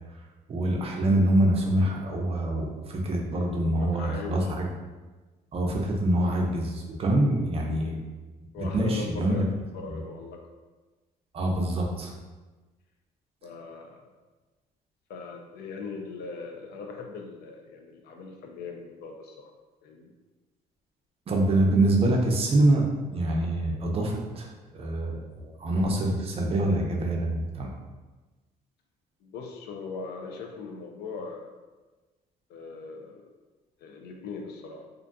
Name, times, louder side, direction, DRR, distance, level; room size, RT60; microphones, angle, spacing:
voice 1, 0.5-4.7 5.5-8.0 8.6-9.5 9.9-10.0 11.3-12.1 21.3-22.8 23.1-24.5 24.7-27.7, right 1 dB, 35° right, 0 dB, 0.5 m, -25 dB
voice 2, 3.3-4.3 7.4-7.5 8.5-10.5 13.4-14.0 15.1-19.5 19.8-20.1 29.2-31.5 32.5-33.3 33.8-34.8, left 4 dB, 75° left, 2 dB, 0.5 m, -40 dB
2.4 x 2.2 x 2.5 m, 1.2 s
cardioid pair, 110°, 17 cm